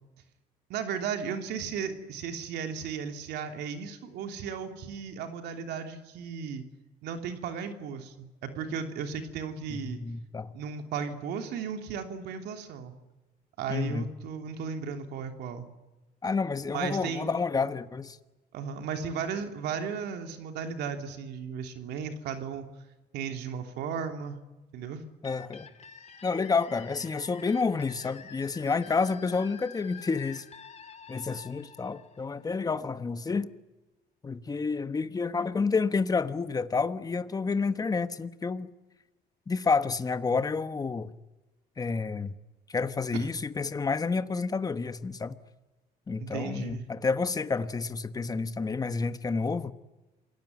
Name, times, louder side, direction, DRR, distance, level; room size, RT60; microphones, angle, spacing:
voice 1, 0.7-6.6 7.0-10.0 10.5-12.9 13.6-15.6 16.6-17.3 18.5-22.6 23.1-24.4 24.7-25.0 43.1-43.3 46.2-46.8, right 6 dB, 80° right, 3.1 m, -35 dB
voice 2, 9.7-10.5 13.7-14.1 16.2-18.2 25.2-25.7 26.2-30.4 31.1-33.5 34.2-38.7 39.5-41.1 41.8-42.3 42.7-45.3 46.1-49.7, left 4 dB, 20° left, 1.2 m, -29 dB
sound 1, 25.2-32.8, left 7 dB, 40° left, 2.5 m, -49 dB
27.5 x 18.5 x 9.4 m
cardioid pair, 110°, 17 cm